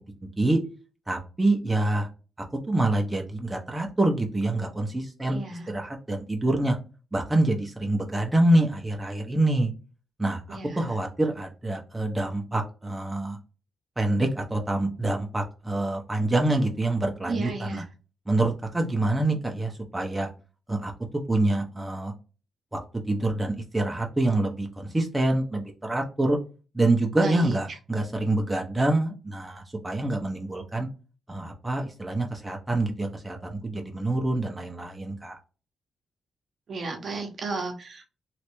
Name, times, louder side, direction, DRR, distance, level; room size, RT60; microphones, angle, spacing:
voice 1, 0.2-0.6 1.1-2.1 2.7-5.4 5.7-6.8 7.1-9.7 10.2-13.4 14.0-17.8 18.3-20.3 20.7-20.9 21.3-22.1 22.7-22.8 23.1-26.4 26.7-30.9 31.3-35.4, right 2 dB, 15° right, 1 dB, 0.6 m, -26 dB
voice 2, 5.3-5.7 10.5-10.8 17.3-17.8 27.2-27.6 36.7-38.1, right 3 dB, 50° right, 4 dB, 0.8 m, -33 dB
3.1 x 2.5 x 2.9 m, 0.34 s
cardioid pair, 100°, 0 cm